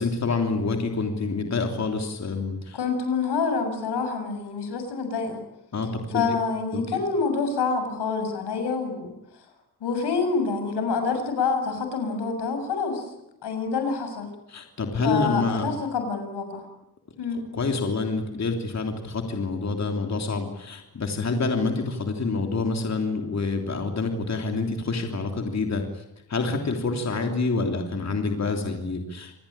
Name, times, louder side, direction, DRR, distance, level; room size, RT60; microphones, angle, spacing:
voice 1, 0.0-2.8 5.7-6.2 6.7-7.0 14.5-15.6 17.3-26.0 26.3-29.4, left 3 dB, 40° left, 4 dB, 3.2 m, -27 dB
voice 2, 2.7-5.4 6.1-9.1 9.8-13.0 13.4-14.3 15.0-16.6 17.2-17.4, left 4 dB, 85° left, 6 dB, 6.9 m, -27 dB
28.0 x 20.5 x 8.8 m, 0.86 s
cardioid pair, 105°, 40 cm